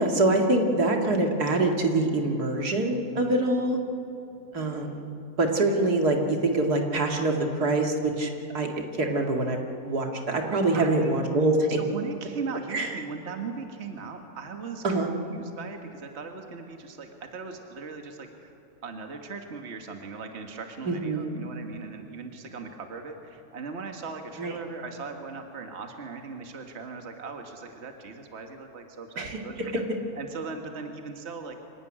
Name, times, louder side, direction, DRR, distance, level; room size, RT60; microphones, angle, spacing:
voice 1, 0.0-3.8 4.5-5.0 5.4-8.7 9.0-9.6 9.8-11.8 12.7-12.9 14.8-15.1 20.9-21.4 24.4-24.6 29.2-29.4, right 2 dB, 75° right, 2 dB, 2.7 m, -25 dB
voice 2, 10.7-11.2 11.8-14.8 15.3-18.5 18.8-29.7 30.2-31.5, right 4 dB, 45° right, 4 dB, 1.8 m, -39 dB
25.0 x 16.5 x 9.9 m, 2.8 s
omnidirectional pair, 1.7 m